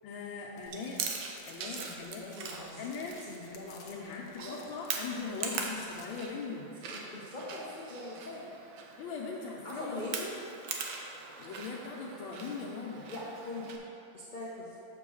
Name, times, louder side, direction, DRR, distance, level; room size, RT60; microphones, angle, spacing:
voice 1, 0.0-1.0 1.5-2.3 2.8-3.2 3.9-6.7 9.0-10.2 11.4-13.1, left 4 dB, 90° left, -7 dB, 1.7 m, -40 dB
sound 1, 0.6-6.2, left 6 dB, 70° left, 1.2 m, -58 dB
Chewing mastication, 0.7-13.8, right 5 dB, 70° right, 1.3 m, -42 dB
voice 2, 1.6-2.9 3.3-4.6 6.9-8.4 9.6-10.3 13.1-13.7 14.1-14.8, left 2 dB, 40° left, -6 dB, 0.7 m, -42 dB
6.8 x 4.7 x 6.3 m, 2.8 s
omnidirectional pair, 2.1 m